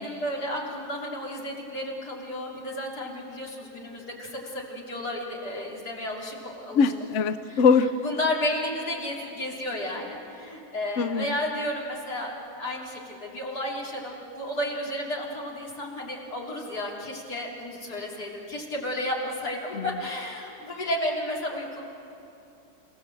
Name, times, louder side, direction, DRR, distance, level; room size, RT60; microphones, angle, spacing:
voice 1, 0.0-6.9 7.5-7.6 8.0-21.8, left 1 dB, 75° left, -3 dB, 3.9 m, -32 dB
voice 2, 6.7-7.9 11.0-11.3 19.8-19.9, left 5 dB, 60° left, 11 dB, 0.9 m, -21 dB
28.0 x 18.0 x 7.7 m, 2.7 s
omnidirectional pair, 1.7 m